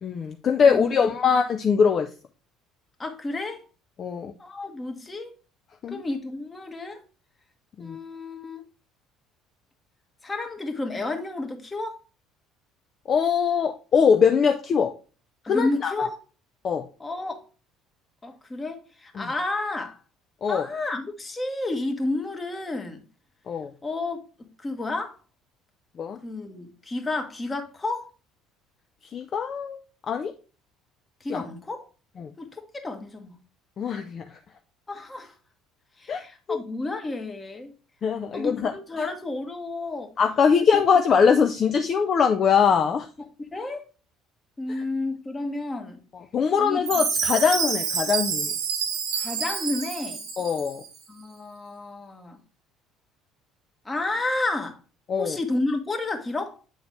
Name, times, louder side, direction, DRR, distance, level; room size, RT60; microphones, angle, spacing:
voice 1, 0.0-2.1 4.0-4.3 5.8-6.0 7.8-8.0 13.1-14.9 15.5-15.9 16.6-16.9 19.2-19.3 20.4-20.7 23.5-23.7 26.0-26.2 29.1-29.8 30.1-30.3 31.3-31.4 32.2-32.3 33.8-34.2 36.1-36.2 36.5-36.6 38.0-38.7 40.2-43.1 46.3-48.5 50.4-50.8 55.1-55.4, left 6 dB, 45° left, 0.5 m, -22 dB
voice 2, 0.7-1.1 3.0-3.6 4.4-5.3 5.9-7.0 7.8-8.6 10.2-12.0 15.4-16.2 17.0-17.4 18.2-20.0 20.5-23.0 23.8-25.2 26.2-28.1 31.2-31.9 32.4-33.4 34.9-35.3 36.0-37.7 38.3-40.1 40.6-40.7 43.2-43.8 44.6-46.0 46.6-46.8 49.1-50.2 51.1-52.4 53.8-54.8 55.2-56.6, left 2 dB, 20° left, 1.3 m, -31 dB
Chime, 46.9-50.9, right 6 dB, 65° right, 0.8 m, -28 dB
8.1 x 3.9 x 3.2 m
figure-of-eight pair, 60°, 0 cm